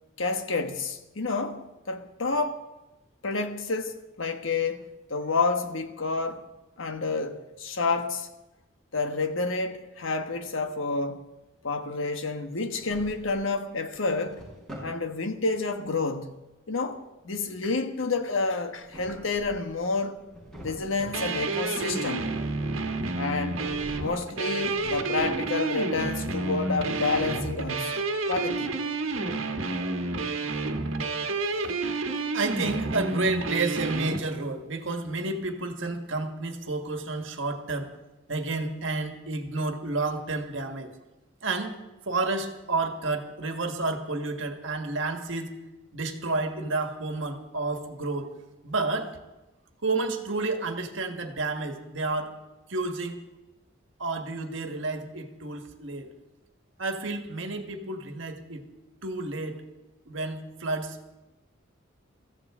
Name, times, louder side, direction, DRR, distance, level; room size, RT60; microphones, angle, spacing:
voice 1, 0.2-2.6 3.2-6.4 6.8-8.3 8.9-11.3 11.6-14.4 14.8-16.3 16.7-20.2 20.6-22.3 23.2-23.6 24.0-27.9 28.3-28.8, left 3 dB, 75° left, 1.3 m, -29 dB
Drawer open or close, 12.5-13.5 13.9-15.0 18.6-19.8 20.1-21.3 23.4-24.1 24.5-25.7, equal, 5° left, 5.2 m, -44 dB
sound 1, 21.1-34.2, right 3 dB, 80° right, 1.3 m, -30 dB
voice 2, 32.3-37.9 38.3-40.9 41.4-41.7 42.1-45.5 45.9-48.3 48.6-49.1 49.8-52.3 52.7-53.2 54.0-56.1 56.8-58.6 59.0-59.6 60.1-61.0, right 3 dB, 65° right, 1.6 m, -30 dB
22.0 x 15.0 x 3.7 m
head